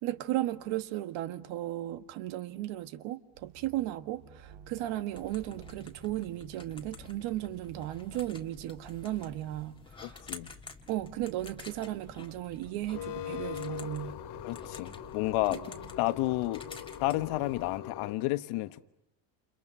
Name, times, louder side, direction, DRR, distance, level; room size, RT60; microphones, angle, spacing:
voice 1, 0.0-10.2 10.9-14.2 15.5-15.7, right 14 dB, 70° right, 1.6 m, -35 dB
sound 1, 3.3-8.3, right 5 dB, 50° right, 3.6 m, -55 dB
sound 2, 5.1-17.8, left 3 dB, 10° left, 1.6 m, -50 dB
voice 2, 10.0-10.5 14.4-15.6 16.0-16.6 17.0-18.9, left 18 dB, 85° left, 1.4 m, -31 dB
sound 3, 12.9-18.1, left 10 dB, 55° left, 2.2 m, -41 dB
29.5 x 29.0 x 5.6 m
cardioid pair, 170°, 49 cm